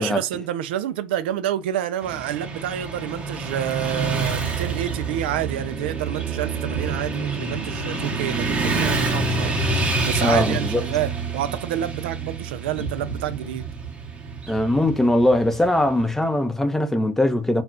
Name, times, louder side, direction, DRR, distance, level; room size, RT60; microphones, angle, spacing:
voice 1, 0.0-13.6, right 11 dB, 85° right, 0.4 m, -28 dB
Motorcycle / Traffic noise roadway noise, 2.0-16.1, right 3 dB, 25° right, 0.8 m, -27 dB
voice 2, 10.2-10.8 14.5-17.6, left 1 dB, 5° left, 0.5 m, -20 dB
2.3 x 2.1 x 3.7 m
supercardioid pair, 125°, 5 cm